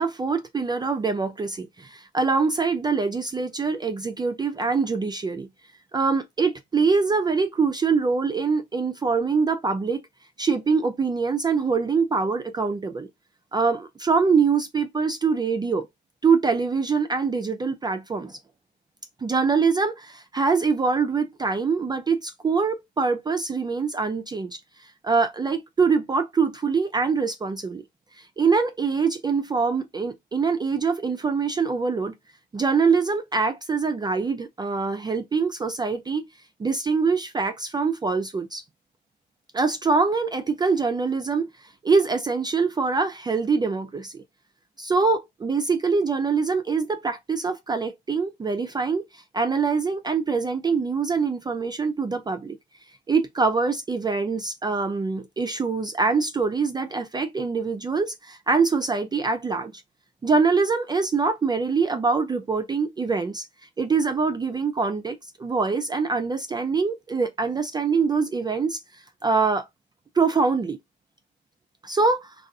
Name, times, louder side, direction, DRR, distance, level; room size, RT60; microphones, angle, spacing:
voice 1, 0.0-5.5 5.9-10.0 10.4-13.1 13.5-15.9 16.2-18.4 19.2-24.6 25.0-27.8 28.2-32.2 32.5-36.3 36.6-38.6 39.5-41.5 41.8-44.1 44.8-52.6 53.1-59.8 60.2-63.5 63.8-68.8 69.2-69.6 70.2-70.8 71.8-72.3, right 4 dB, 20° right, 0.3 m, -24 dB
2.5 x 2.3 x 2.3 m
cardioid pair, 90°, 20 cm